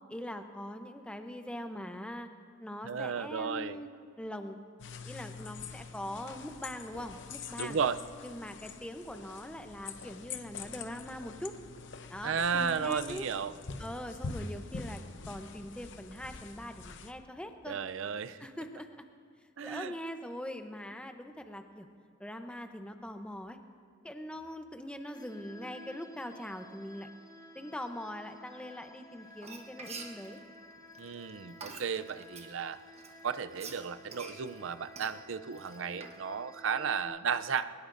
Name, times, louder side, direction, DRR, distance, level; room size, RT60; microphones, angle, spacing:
voice 1, 0.1-2.3 2.6-3.9 4.2-4.6 5.0-7.8 8.2-11.6 12.1-13.3 13.8-15.0 15.3-17.8 18.4-19.0 19.6-21.9 22.2-23.6 24.0-27.1 27.5-30.4, left 1 dB, 5° left, 6 dB, 0.8 m, -42 dB
voice 2, 2.8-3.8 7.6-8.0 12.2-13.5 17.7-18.4 19.6-19.9 31.0-32.8 33.2-37.9, right 6 dB, 75° right, 12 dB, 0.5 m, -34 dB
sound 1, 4.8-17.1, left 4 dB, 65° left, 0.8 m, -45 dB
sound 2, 25.1-37.1, equal, 20° left, 3.9 m, -54 dB
Frying (food), 29.3-32.5 33.0-36.2, right 4 dB, 35° right, 1.3 m, -47 dB
22.0 x 19.0 x 2.6 m, 2.2 s
head